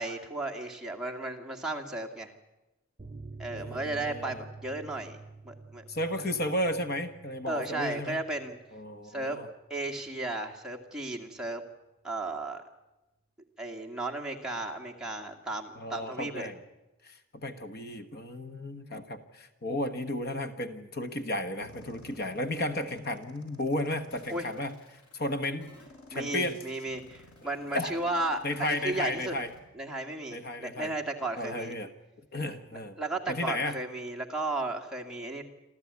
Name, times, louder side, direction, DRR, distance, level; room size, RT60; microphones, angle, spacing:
voice 1, 0.0-2.3 3.4-5.8 7.5-8.6 9.1-9.4 9.7-11.6 12.0-12.6 13.6-16.5 24.3-24.5 26.1-29.3 29.7-31.8 32.7-35.4, right 2 dB, 5° right, 0 dB, 2.0 m, -34 dB
sound 1, 3.0-10.1 10.3-10.5 10.8-10.9, right 3 dB, 25° right, 0.7 m, -49 dB
voice 2, 3.5-4.4 5.9-8.2 8.7-9.5 15.8-16.6 17.0-24.7 25.1-25.7 26.1-26.6 27.7-27.9 28.4-29.5 30.3-30.9 31.4-31.9 32.3-33.0 33.3-33.8, left 1 dB, 45° left, 9 dB, 1.3 m, -33 dB
sound 2, 21.6-29.6, left 2 dB, 90° left, 5.7 m, -55 dB
27.0 x 14.0 x 9.6 m, 1.0 s
head